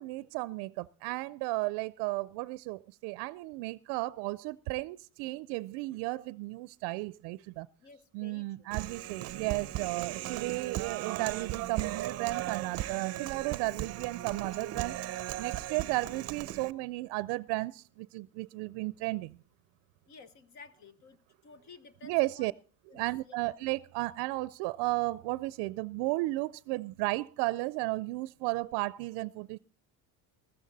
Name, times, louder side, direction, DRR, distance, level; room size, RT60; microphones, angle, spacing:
voice 1, 0.0-7.7 8.1-15.0 15.4-19.4 22.0-22.5 22.9-29.6, right 21 dB, 80° right, 0.5 m, -34 dB
voice 2, 7.8-8.7 20.1-21.2 21.4-22.5 22.9-23.4, left 4 dB, 45° left, 1.1 m, -54 dB
Human voice, 8.7-16.7, right 14 dB, 40° right, 0.6 m, -37 dB
14.0 x 14.0 x 4.0 m
cardioid pair, 155°, 39 cm